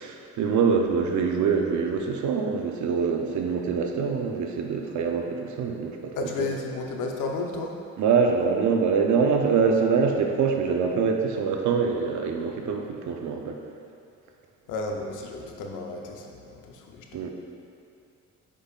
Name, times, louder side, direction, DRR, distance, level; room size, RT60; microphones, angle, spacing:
voice 1, 0.0-6.5 8.0-13.6 17.1-17.3, right 5 dB, 70° right, 2 dB, 0.8 m, -24 dB
voice 2, 6.1-7.7 14.7-17.3, left 3 dB, 90° left, 1 dB, 0.8 m, -33 dB
8.4 x 5.4 x 2.4 m, 2.6 s
cardioid pair, 90°, 30 cm